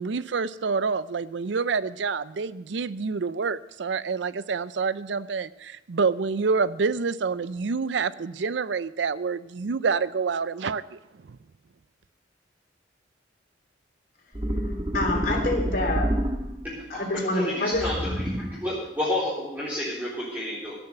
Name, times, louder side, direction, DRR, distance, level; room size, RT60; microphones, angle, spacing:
voice 1, 0.0-11.0, right 5 dB, 75° right, 16 dB, 0.5 m, -27 dB
sound 1, 14.3-16.8 17.7-18.7, equal, 30° right, 1.4 m, -28 dB
voice 2, 14.9-16.1 16.9-17.9, left 2 dB, 50° left, 1 dB, 3.3 m, -26 dB
voice 3, 16.6-17.1 17.3-20.8, left 1 dB, 10° right, -9 dB, 3.7 m, -30 dB
16.5 x 7.1 x 8.0 m, 0.95 s
head